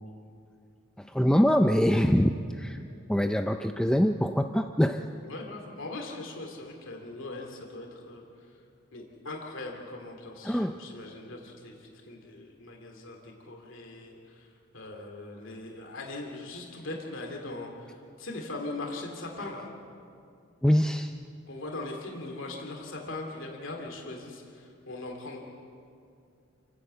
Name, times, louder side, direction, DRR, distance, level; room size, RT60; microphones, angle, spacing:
voice 1, 1.0-2.8 3.1-5.0 10.4-10.7 20.6-21.1, equal, 5° left, 6 dB, 0.4 m, -24 dB
voice 2, 5.3-8.2 8.9-14.5 14.7-19.7 21.5-25.4, left 2 dB, 65° left, 1 dB, 2.6 m, -40 dB
28.5 x 11.5 x 8.1 m, 2.4 s
head